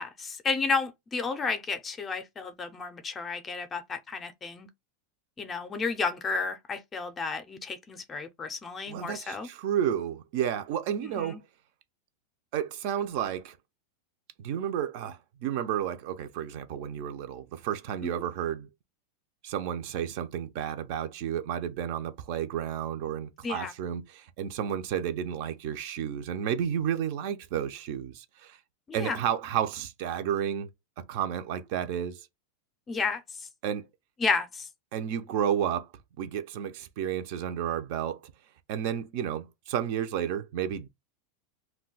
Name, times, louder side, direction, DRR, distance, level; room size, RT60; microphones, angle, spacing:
voice 1, 0.0-4.7 5.4-9.5 11.0-11.4 23.4-23.7 28.9-29.2 32.9-33.2 34.2-34.7, left 4 dB, 20° left, 0.5 m, -32 dB
voice 2, 8.9-11.4 12.5-13.6 14.4-18.7 19.4-28.6 28.9-30.7 31.0-32.3 33.6-33.9 34.9-35.9 36.2-38.2 38.7-40.9, right 9 dB, 55° right, 0.5 m, -31 dB
2.2 x 2.2 x 3.9 m
supercardioid pair, 145°, 0 cm